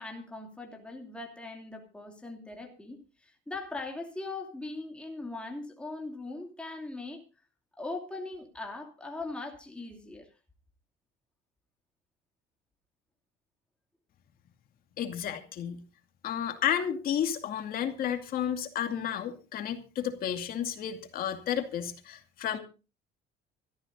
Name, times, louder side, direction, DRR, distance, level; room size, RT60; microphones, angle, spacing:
voice 1, 0.0-7.2 7.8-10.3 16.7-16.8, left 2 dB, 5° left, 1 dB, 2.6 m, -40 dB
voice 2, 15.0-15.8 16.2-22.6, left 9 dB, 50° left, 6 dB, 2.4 m, -32 dB
24.5 x 13.5 x 2.7 m, 0.33 s
cardioid pair, 150°, 19 cm